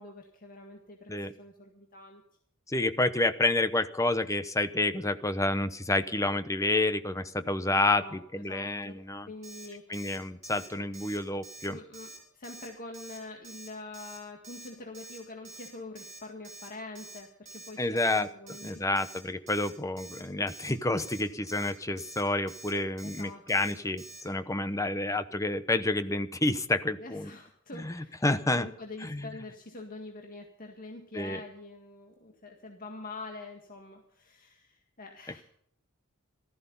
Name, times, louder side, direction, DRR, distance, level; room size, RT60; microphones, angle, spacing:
voice 1, 0.0-2.2 7.7-8.2 8.5-10.1 11.7-19.0 23.0-23.7 24.6-25.2 27.0-28.2 28.6-35.4, left 2 dB, 40° left, 2 dB, 1.9 m, -45 dB
voice 2, 2.7-9.3 9.9-11.8 17.8-27.3 27.7-28.7 29.0-29.3 31.1-31.4, left 2 dB, 15° left, 11 dB, 0.9 m, -29 dB
Alarm, 9.4-9.7 9.9-10.2 10.4-10.7 10.9-11.2 11.4-11.7 11.9-12.2 12.4-12.7 12.9-13.2 13.4-13.7 13.9-14.2 14.4-14.7 14.9-15.2 15.4-15.7 15.9-16.2 16.4-16.7 16.9-17.2 17.5-17.7 18.0-18.2 18.5-18.7 19.0-19.2 19.5-19.7 20.0-20.2 20.5-20.7 21.0-21.2 21.5-21.7 22.0-22.2 22.5-22.7 23.0-23.2 23.5-23.7 24.0-24.2, right 3 dB, 35° right, 7.1 m, -47 dB
15.0 x 14.0 x 5.5 m, 0.67 s
head